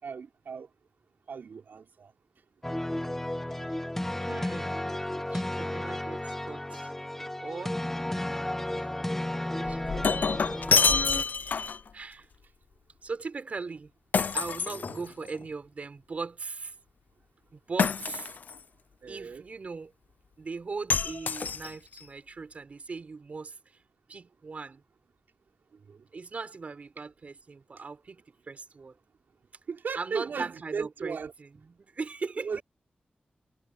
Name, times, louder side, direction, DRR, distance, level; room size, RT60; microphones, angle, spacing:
voice 1, 0.0-0.7 1.3-2.1 8.8-8.9 14.7-15.1 19.0-19.4 25.7-26.1 29.7-31.3 32.4-32.6, right 5 dB, 80° right, 4.5 m, -37 dB
sound 1, 2.6-11.2, left 1 dB, 10° left, 1.3 m, -33 dB
voice 2, 3.5-3.8 4.2-4.8 5.3-6.9 7.4-7.8 9.6-10.8 11.4-11.6 11.9-12.3 13.0-13.9 14.3-16.7 17.5-18.3 19.1-19.9 20.4-23.6 24.1-24.8 26.1-28.9 29.9-32.5, right 4 dB, 45° right, 4.7 m, -39 dB
Shatter, 9.6-11.9 14.1-15.4 17.8-18.6 20.9-22.0, left 5 dB, 60° left, 0.5 m, -27 dB
wide cardioid pair, 175°, 3 cm